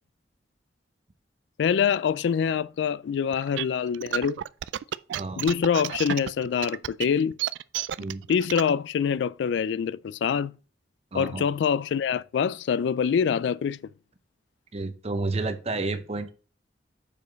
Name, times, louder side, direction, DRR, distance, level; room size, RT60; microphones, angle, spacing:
voice 1, 1.6-4.4 5.4-7.4 8.3-10.5 11.1-13.8, left 7 dB, 70° left, 0.3 m, -25 dB
sound 1, 3.3-8.7, right 11 dB, 75° right, 0.3 m, -31 dB
voice 2, 11.1-11.5 14.7-16.3, right 3 dB, 35° right, 0.7 m, -30 dB
6.8 x 5.0 x 3.9 m
head